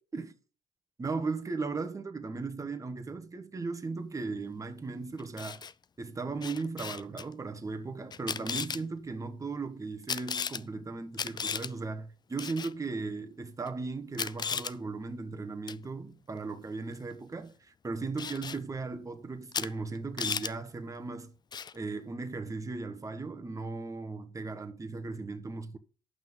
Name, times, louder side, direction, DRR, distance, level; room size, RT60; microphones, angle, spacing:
voice 1, 1.0-5.6 6.0-21.4 21.7-25.8, right 3 dB, 20° right, 1.2 m, -37 dB
Camera, 5.2-5.7 6.4-7.2 8.1-8.8 10.1-10.6 11.1-11.7 12.4-12.7 13.7-13.8 14.1-14.7 15.7-15.9 18.2-18.6 19.5-19.7 20.0-20.5 21.5-21.8, left 6 dB, 25° left, 0.4 m, -35 dB
9.4 x 5.9 x 5.6 m
cardioid pair, 110°, 17 cm